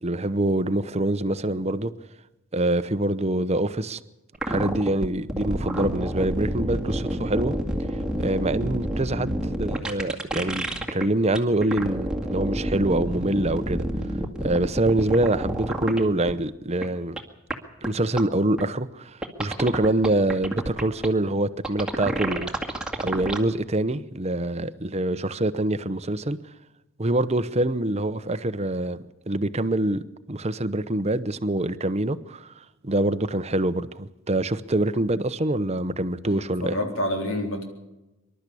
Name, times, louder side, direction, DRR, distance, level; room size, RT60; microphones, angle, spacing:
voice 1, 0.0-1.9 2.5-4.0 4.5-7.6 8.2-13.8 14.4-17.2 17.8-19.1 19.4-22.5 23.0-26.4 27.0-30.0 30.3-32.5 32.8-36.7, right 1 dB, 30° right, 0.8 m, -25 dB
sound 1, 4.3-11.0 11.3-16.0 16.3-16.4 16.8-16.9 17.2-17.3 17.5-17.6 17.8-17.9 18.2-18.3 18.6-18.7 19.2-21.1 21.6-23.4, right 1 dB, 5° right, 2.1 m, -28 dB
voice 2, 36.2-37.7, left 1 dB, 70° left, 3.7 m, -28 dB
25.5 x 12.5 x 8.4 m
head